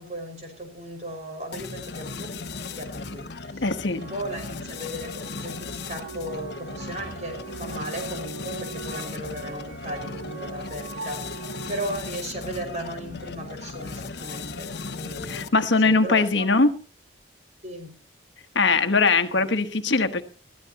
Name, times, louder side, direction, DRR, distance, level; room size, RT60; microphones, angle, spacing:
voice 1, 0.0-2.5 2.7-15.5 15.8-16.5 17.6-17.9 19.3-19.5, right 1 dB, 35° right, 4 dB, 5.4 m, -36 dB
sound 1, 1.5-15.7, left 4 dB, 60° left, 1.0 m, -37 dB
voice 2, 3.6-4.0 15.3-16.7 18.5-20.2, left 3 dB, 80° left, 8 dB, 1.3 m, -21 dB
sound 2, 4.0-11.9, right 4 dB, 90° right, 7.1 m, -41 dB
21.5 x 15.0 x 2.9 m, 0.35 s
head